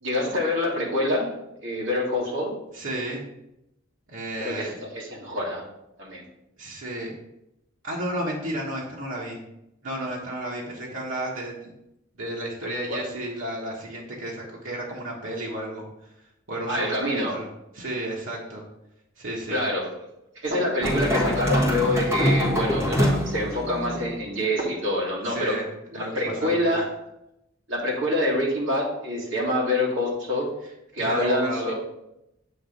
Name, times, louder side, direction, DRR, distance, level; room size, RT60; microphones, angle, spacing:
voice 1, 0.0-1.3 1.6-2.5 4.4-5.6 6.0-6.2 12.9-13.0 16.7-17.4 19.5-19.9 20.4-25.6 25.9-26.8 27.7-30.5 30.9-31.7, left 1 dB, 70° right, -3 dB, 1.9 m, -26 dB
voice 2, 2.7-3.2 4.1-4.8 6.6-7.1 7.8-9.4 9.8-11.7 12.1-15.9 16.5-17.5 17.7-18.6 19.2-19.6 25.2-25.6 25.9-26.7 31.0-31.7, right 1 dB, 90° right, -4 dB, 1.2 m, -32 dB
sound 1, 20.8-24.2, equal, 15° right, 1.3 m, -24 dB
7.6 x 3.0 x 5.1 m, 0.86 s
head